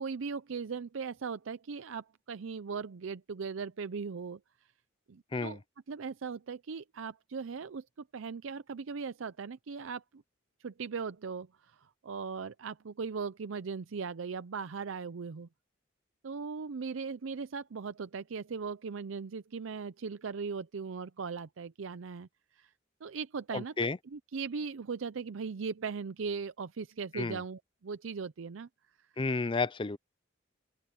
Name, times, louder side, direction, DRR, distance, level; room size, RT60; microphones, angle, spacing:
voice 1, 0.0-4.4 5.1-5.6 5.9-10.2 10.6-15.5 16.2-22.7 23.0-28.7 29.0-29.1, right 5 dB, 80° right, 0.5 m, -39 dB
voice 2, 23.5-24.0 27.1-27.4 29.2-30.0, left 3 dB, 25° left, 0.5 m, -31 dB
open air
head